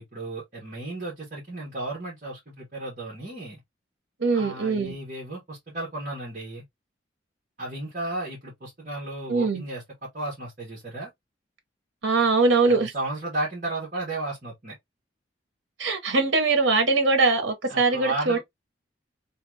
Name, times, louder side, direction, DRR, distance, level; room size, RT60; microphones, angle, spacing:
voice 1, 0.0-3.6 4.3-6.6 7.6-11.1 12.7-14.8 17.7-18.4, right 2 dB, 45° right, 1.5 m, -34 dB
voice 2, 4.2-5.0 9.3-9.6 12.0-12.9 15.8-18.4, right 3 dB, 90° right, 0.9 m, -22 dB
3.2 x 2.5 x 3.1 m
head